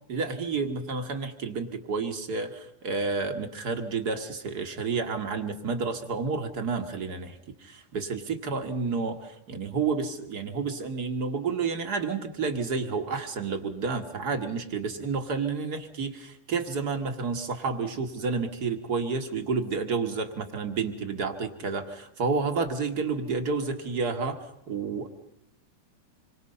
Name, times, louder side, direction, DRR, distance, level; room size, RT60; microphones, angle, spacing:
voice 1, 0.1-25.1, right 4 dB, 40° right, 7 dB, 1.6 m, -30 dB
27.0 x 24.0 x 5.5 m, 0.80 s
omnidirectional pair, 3.6 m